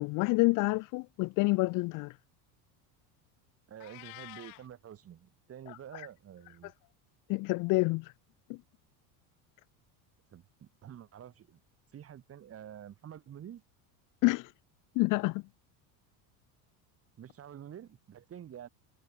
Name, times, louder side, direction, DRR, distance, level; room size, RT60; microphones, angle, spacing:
voice 1, 0.0-2.1 5.7-6.1 7.3-8.1 8.5-8.6 14.2-14.5 15.0-15.4, left 24 dB, 45° left, 0.5 m, -28 dB
voice 2, 3.7-6.7 10.3-11.6 11.9-13.6 17.2-18.7, right 10 dB, 30° right, 5.5 m, -48 dB
Meow, 3.8-4.7, left 27 dB, 90° left, 1.5 m, -48 dB
cardioid pair, 150°, 43 cm